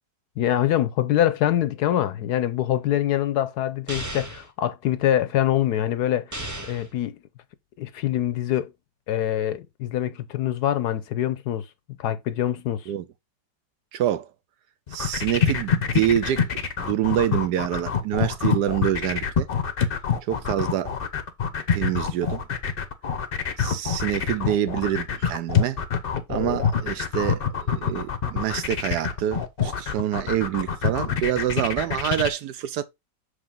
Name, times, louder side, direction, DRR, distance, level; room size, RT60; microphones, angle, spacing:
voice 1, 0.4-6.4 6.7-7.2 7.8-8.7 9.1-11.7 12.0-12.9, left 12 dB, 70° left, 1.1 m, -24 dB
sound 1, 3.9-4.5 6.3-6.9, right 1 dB, 20° right, 0.5 m, -34 dB
voice 2, 13.9-14.3 14.9-16.5 16.8-19.5 20.3-20.9 21.7-22.4 23.6-25.8 26.3-32.8, right 11 dB, 75° right, 1.1 m, -26 dB
sound 2, 14.9-32.3, left 7 dB, 50° left, 0.7 m, -25 dB
6.3 x 4.9 x 3.6 m
omnidirectional pair, 1.9 m